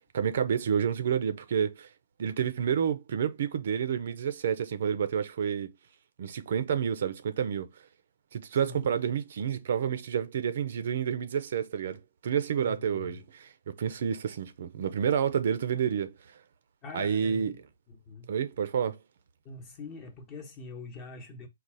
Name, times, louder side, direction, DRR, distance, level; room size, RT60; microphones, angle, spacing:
voice 1, 0.1-1.9 2.2-5.7 6.2-7.7 8.3-16.4 16.9-17.6 18.3-19.0, right 7 dB, 50° right, 0.6 m, -29 dB
voice 2, 12.6-13.2 16.8-17.6 17.9-18.3 19.4-21.5, left 4 dB, 20° left, 1.0 m, -44 dB
4.0 x 2.4 x 4.7 m
hypercardioid pair, 170°, 0 cm